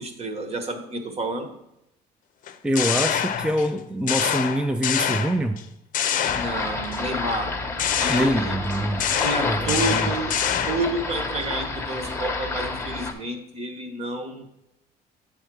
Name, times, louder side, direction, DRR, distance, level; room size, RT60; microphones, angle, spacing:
voice 1, 0.0-1.6 6.3-7.5 7.9-8.5 9.2-10.4 10.7-14.5, right 2 dB, 40° right, 6 dB, 1.3 m, -30 dB
sound 1, 2.5-3.7 4.1-5.6 5.9-7.0 7.8-11.0, left 9 dB, 50° left, 0.6 m, -26 dB
voice 2, 2.6-5.6 8.1-9.0 9.3-10.1, right 1 dB, 5° right, 6 dB, 0.4 m, -25 dB
sound 2, 6.3-13.1, left 3 dB, 15° left, 1.0 m, -30 dB
7.9 x 3.6 x 6.2 m, 0.85 s
cardioid pair, 110°, 17 cm